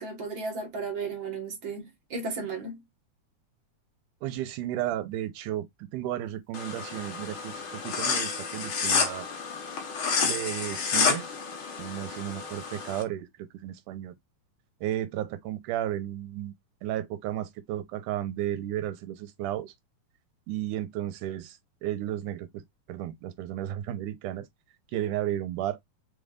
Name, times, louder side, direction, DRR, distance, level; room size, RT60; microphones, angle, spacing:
voice 1, 0.0-2.8, right 4 dB, 45° right, 2.0 m, -34 dB
voice 2, 4.2-5.7 5.9-9.3 10.2-11.4 11.8-14.1 14.8-16.5 16.8-19.7 20.5-24.5 24.9-25.8, right 12 dB, 85° right, 2.2 m, -33 dB
sound 1, 6.5-13.0, left 5 dB, 65° left, 1.3 m, -30 dB
5.4 x 3.7 x 2.4 m
omnidirectional pair, 3.7 m